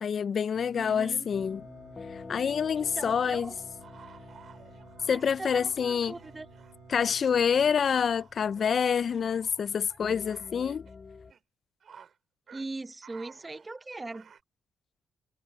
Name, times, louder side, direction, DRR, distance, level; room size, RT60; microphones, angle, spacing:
voice 1, 0.0-1.6 2.1-3.5 5.1-6.1 6.9-10.9, left 7 dB, 50° left, 0.3 m, -27 dB
Singing, 0.5-7.8, right 12 dB, 85° right, 2.6 m, -54 dB
voice 2, 0.7-1.3 2.8-3.5 5.1-6.5 12.5-14.3, right 2 dB, 20° right, 1.0 m, -40 dB
sound 1, 1.3-11.3, left 4 dB, 35° left, 6.3 m, -48 dB
sound 2, 2.8-6.7 7.1-10.9 11.3-11.4 11.8-12.2 12.5-12.7 13.0-14.4, right 7 dB, 55° right, 7.1 m, -55 dB
cardioid pair, 90°, 0 cm